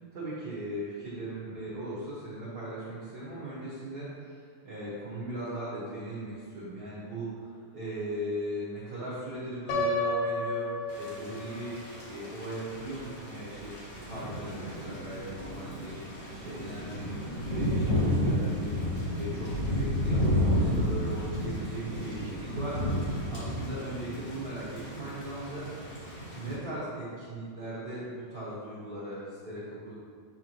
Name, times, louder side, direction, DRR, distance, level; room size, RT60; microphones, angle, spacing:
voice 1, 0.1-10.7 11.0-11.8 12.0-16.0 16.3-17.2 17.5-18.8 19.1-25.6 26.4-29.9, right 1 dB, 55° right, -11 dB, 1.1 m, -38 dB
Piano, 9.7-11.7, left 1 dB, 75° left, 2.5 m, -31 dB
Thunder / Rain, 10.9-26.5, equal, 35° left, 1.1 m, -32 dB
8.3 x 4.7 x 3.0 m, 2.1 s
omnidirectional pair, 4.0 m